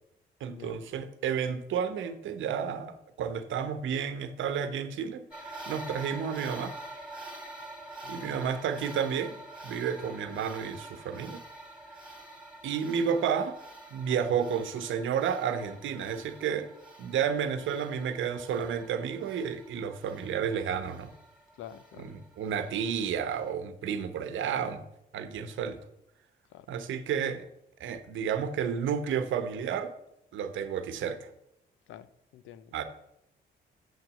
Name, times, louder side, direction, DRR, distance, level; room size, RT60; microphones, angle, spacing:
voice 1, 0.4-6.7 8.1-9.4 9.6-11.4 12.6-13.6 13.9-16.7 17.0-21.1 22.0-24.8 25.1-25.8 26.7-27.4 27.8-29.9 30.3-31.3 32.7-32.8, right 7 dB, 75° right, 10 dB, 1.0 m, -31 dB
sound 1, 5.3-23.5, right 2 dB, 5° right, 2.2 m, -47 dB
voice 2, 8.0-8.5 21.6-22.1 26.5-26.7 31.9-32.7, left 10 dB, 85° left, 15 dB, 0.6 m, -48 dB
7.4 x 6.1 x 7.5 m, 0.83 s
cardioid pair, 90°, 20 cm